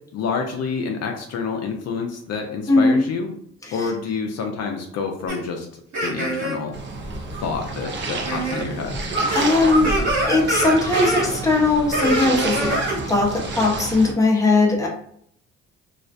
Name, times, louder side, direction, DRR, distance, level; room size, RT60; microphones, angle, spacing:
voice 1, 0.1-3.3 3.7-6.7 7.4-9.0, left 5 dB, 60° left, 3 dB, 0.4 m, -28 dB
voice 2, 2.7-3.1 3.7-3.8 9.3-9.9 10.3-12.7 13.1-14.9, left 3 dB, 10° left, 0 dB, 0.6 m, -19 dB
sound 1, 5.3-5.4 5.9-6.6 7.3-7.4 8.2-8.6 8.9-11.3 11.9-13.0, right 1 dB, 60° right, 1.2 m, -24 dB
sound 2, 6.7-14.1, right 3 dB, 40° right, 0.5 m, -29 dB
2.3 x 2.1 x 2.5 m, 0.66 s
cardioid pair, 90°, 30 cm